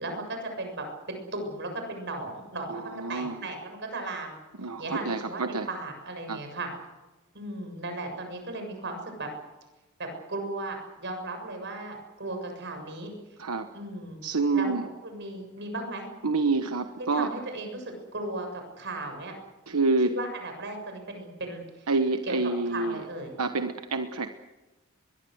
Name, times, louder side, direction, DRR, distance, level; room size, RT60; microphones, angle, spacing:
voice 1, 0.0-4.4 4.8-6.7 7.3-9.3 10.0-13.1 13.7-14.2 14.5-14.7 15.0-16.1 17.1-19.3 20.1-21.9 22.2-22.4 22.7-23.3, right 2 dB, 55° right, 5 dB, 7.1 m, -36 dB
voice 2, 2.7-3.5 4.6-5.7 6.3-6.4 13.4-13.7 14.2-14.8 16.2-17.3 19.7-20.1 21.9-23.0 23.4-24.3, right 3 dB, 85° right, 7 dB, 1.2 m, -27 dB
23.0 x 21.5 x 8.0 m, 1.1 s
head